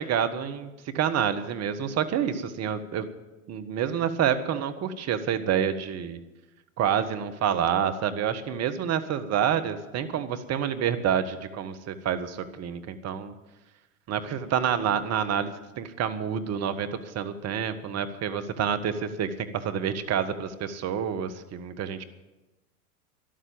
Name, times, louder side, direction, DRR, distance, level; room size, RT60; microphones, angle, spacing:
voice 1, 0.0-3.1 3.5-6.2 6.8-13.3 14.1-22.0, right 8 dB, 35° right, 10 dB, 1.5 m, -28 dB
13.0 x 12.0 x 8.6 m, 1.1 s
hypercardioid pair, 90°, 42 cm